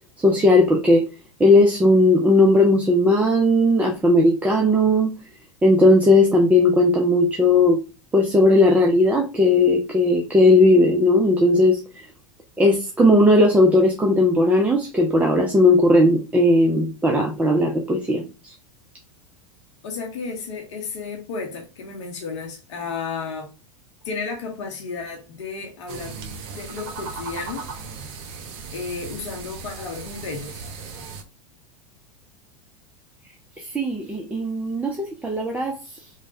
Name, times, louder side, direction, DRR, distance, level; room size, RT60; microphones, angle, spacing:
voice 1, 0.2-1.1 1.4-5.3 5.6-7.8 8.1-12.1 12.6-18.5 33.6-36.1, left 1 dB, 10° right, 0.4 m, -17 dB
voice 2, 19.8-23.5 24.0-26.2 26.5-27.6 28.7-30.6, left 4 dB, 65° left, 0.7 m, -33 dB
sound 1, 25.9-31.2, right 5 dB, 50° right, 0.6 m, -37 dB
3.1 x 2.1 x 2.6 m
figure-of-eight pair, 90°, 17 cm